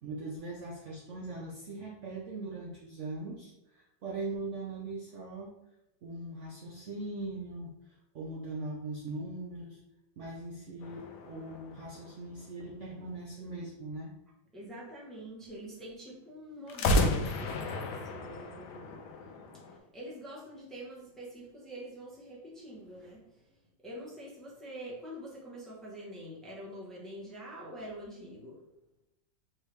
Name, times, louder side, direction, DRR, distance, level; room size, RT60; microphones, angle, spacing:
voice 1, 0.0-5.5 6.0-9.8 10.2-14.1 14.6-14.7, right 2 dB, 80° right, -2 dB, 0.6 m, -40 dB
sound 1, 10.8-12.6 16.7-19.8, left 1 dB, 75° left, 1.1 m, -32 dB
voice 2, 14.5-19.0 19.9-23.2 23.8-28.6, equal, ahead, -5 dB, 0.7 m, -45 dB
4.6 x 3.1 x 3.3 m, 0.89 s
omnidirectional pair, 2.0 m